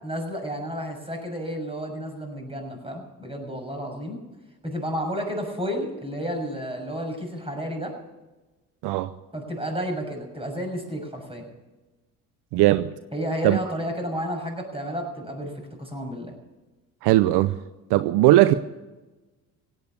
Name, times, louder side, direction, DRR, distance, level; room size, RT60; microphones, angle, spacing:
voice 1, 0.0-4.2 4.6-8.0 9.3-11.5 13.1-16.3, equal, 15° right, 6.5 m, -31 dB
voice 2, 12.5-12.9 13.4-13.6 17.0-17.6 17.9-18.5, right 16 dB, 70° right, 0.7 m, -18 dB
17.0 x 9.3 x 8.3 m
hypercardioid pair, 55°, 41 cm